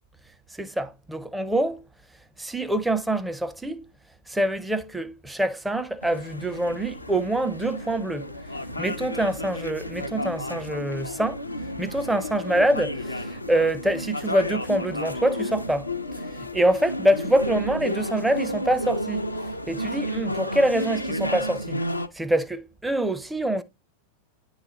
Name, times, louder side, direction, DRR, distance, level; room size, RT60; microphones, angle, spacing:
voice 1, 0.5-1.8 2.4-3.9 4.3-8.3 8.8-11.4 11.8-15.9 16.3-19.2 19.7-21.8 22.1-23.6, right 1 dB, 5° right, 0.6 m, -25 dB
sound 1, 6.0-22.1, left 1 dB, 85° left, 0.6 m, -32 dB
10.0 x 3.9 x 2.9 m
figure-of-eight pair, 90°, 0 cm